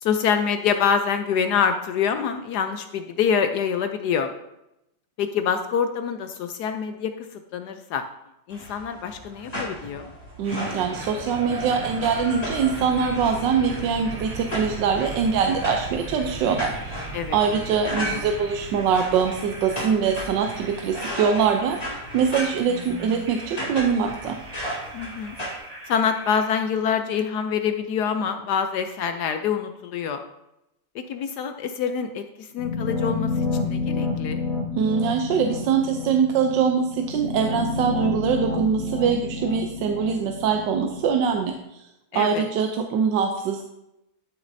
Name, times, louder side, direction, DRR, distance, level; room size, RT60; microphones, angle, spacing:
voice 1, 0.0-4.3 5.2-8.0 8.5-10.1 17.1-17.6 18.0-18.2 24.9-25.4 25.9-30.2 30.9-34.4 42.1-42.5, left 7 dB, 70° left, 8 dB, 1.0 m, -26 dB
sound 1, 8.5-25.6, equal, 20° left, 2.1 m, -35 dB
sound 2, 10.4-26.4, right 2 dB, 50° right, 1.9 m, -38 dB
voice 2, 10.4-17.1 17.3-21.8 22.1-24.4 34.7-41.5 42.1-43.6, right 6 dB, 75° right, 4 dB, 1.3 m, -23 dB
sound 3, 32.6-41.5, left 3 dB, 50° left, 2.6 m, -29 dB
12.5 x 6.3 x 2.6 m, 0.87 s
omnidirectional pair, 2.0 m